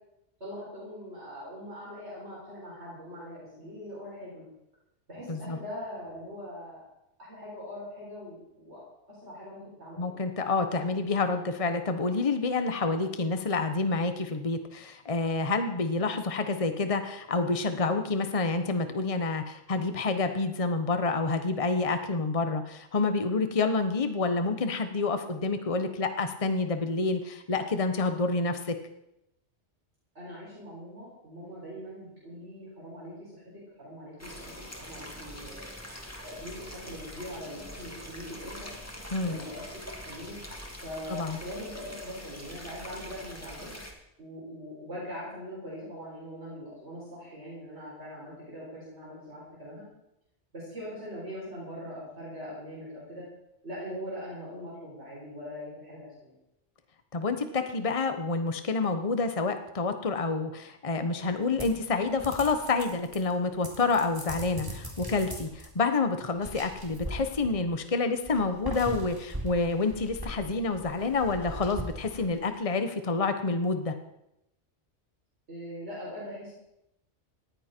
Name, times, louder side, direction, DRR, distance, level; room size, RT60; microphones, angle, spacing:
voice 1, 0.4-4.4 5.1-6.8 7.2-8.8 9.1-10.1 30.1-33.4 33.8-35.7 36.2-38.7 39.2-40.4 40.8-43.8 44.2-49.8 50.5-53.2 53.6-56.3 75.5-76.5, equal, 70° right, -7 dB, 7.7 m, -42 dB
voice 2, 10.0-28.7 39.1-39.4 41.1-41.4 57.1-73.9, left 3 dB, 30° left, 7 dB, 1.2 m, -28 dB
sound 1, 34.2-43.9, equal, 15° left, 2.6 m, -44 dB
sound 2, 61.6-63.3 63.6-65.7 66.3-67.8 68.3-72.6, equal, 20° right, 3.5 m, -40 dB
19.5 x 15.0 x 4.5 m, 0.84 s
omnidirectional pair, 1.2 m